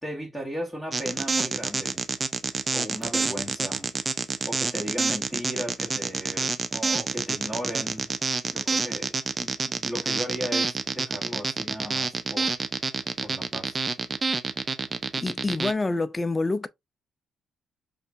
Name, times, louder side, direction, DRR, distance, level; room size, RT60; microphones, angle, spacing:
voice 1, 0.0-2.0 2.7-3.9 4.5-8.1 8.5-12.5 13.2-13.8, equal, ahead, 1.4 m, -36 dB
sound 1, 0.9-15.7, right 4 dB, 30° right, 0.5 m, -28 dB
voice 2, 15.2-16.7, left 3 dB, 20° left, 0.4 m, -27 dB
6.5 x 2.5 x 2.2 m
cardioid pair, 90°, 0 cm